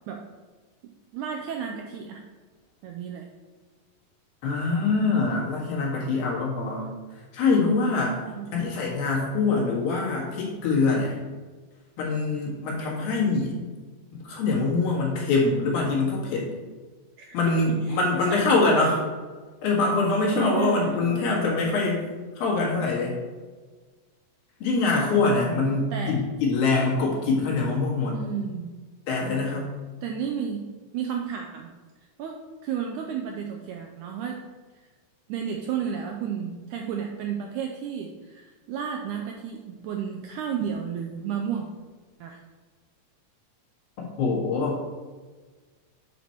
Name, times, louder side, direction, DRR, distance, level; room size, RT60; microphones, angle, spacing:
voice 1, 1.1-2.2 2.8-3.2 8.3-8.5 17.2-17.3 17.7-18.0 18.3-18.7 20.3-21.4 25.9-26.2 28.1-28.7 30.0-30.6 30.9-31.7 32.2-34.4 35.3-41.7 42.2-42.4, right 7 dB, 85° right, 2 dB, 1.8 m, -32 dB
voice 2, 4.4-6.9 7.3-8.2 8.5-11.1 12.0-13.5 14.1-16.5 17.3-19.0 19.6-22.1 22.4-23.1 24.6-28.2 29.1-29.7 44.0-44.8, left 3 dB, 80° left, -4 dB, 3.5 m, -24 dB
9.2 x 4.2 x 4.5 m, 1.4 s
omnidirectional pair, 4.1 m